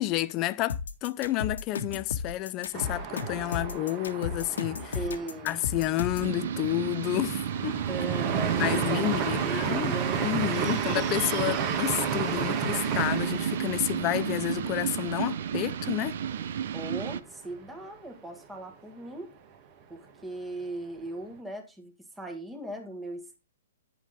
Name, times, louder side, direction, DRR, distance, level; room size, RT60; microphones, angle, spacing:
voice 1, 0.0-5.0 5.4-7.8 8.6-9.9 10.2-16.2, left 16 dB, 25° left, 0.5 m, -30 dB
sound 1, 0.7-6.3, left 6 dB, 90° left, 1.8 m, -34 dB
sound 2, 2.7-16.5 16.8-16.9 17.2-17.8, right 6 dB, 30° right, 1.6 m, -33 dB
voice 2, 4.9-5.5 7.9-10.2 16.7-19.3 19.9-23.4, right 2 dB, 5° right, 1.6 m, -38 dB
sound 3, 6.2-17.2, right 8 dB, 55° right, 0.8 m, -32 dB
10.0 x 7.3 x 3.7 m
hypercardioid pair, 165°, 0 cm